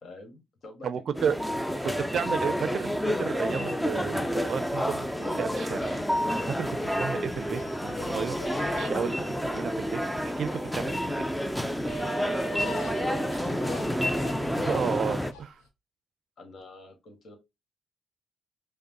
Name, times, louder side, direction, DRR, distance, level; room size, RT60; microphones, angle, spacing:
voice 1, 0.0-2.4 6.8-7.0 10.5-11.0 11.9-14.3 16.4-17.4, left 2 dB, 60° left, 1.4 m, -47 dB
voice 2, 0.8-1.4 1.8-5.9 6.5-6.7 7.0-8.4 8.7-9.1 9.4-10.5 10.8-11.1 14.6-15.6, right 7 dB, 60° right, 0.4 m, -32 dB
sound 1, 1.1-15.3, equal, 5° left, 0.5 m, -29 dB
sound 2, 5.8-6.2 8.4-9.0 11.8-14.3, right 3 dB, 45° left, 1.4 m, -38 dB
sound 3, 7.5-15.7, left 5 dB, 85° left, 0.6 m, -45 dB
5.1 x 2.1 x 2.9 m
hypercardioid pair, 45°, 0 cm